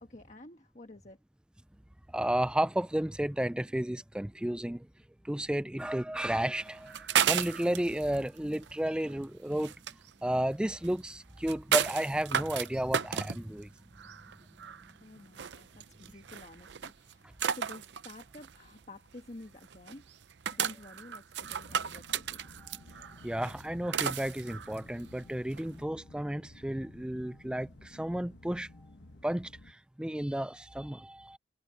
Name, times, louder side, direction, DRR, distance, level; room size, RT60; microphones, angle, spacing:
voice 1, 0.0-1.2 15.0-20.2 20.5-22.4, left 2 dB, 40° left, 1.4 m, -51 dB
voice 2, 2.1-4.9 5.2-9.7 10.2-13.7 22.6-22.8 23.2-28.7 29.2-31.4, right 1 dB, 5° right, 0.3 m, -32 dB
sound 1, 6.6-25.8, right 8 dB, 85° right, 0.6 m, -35 dB
sound 2, 21.4-29.7, left 2 dB, 90° left, 1.2 m, -54 dB
head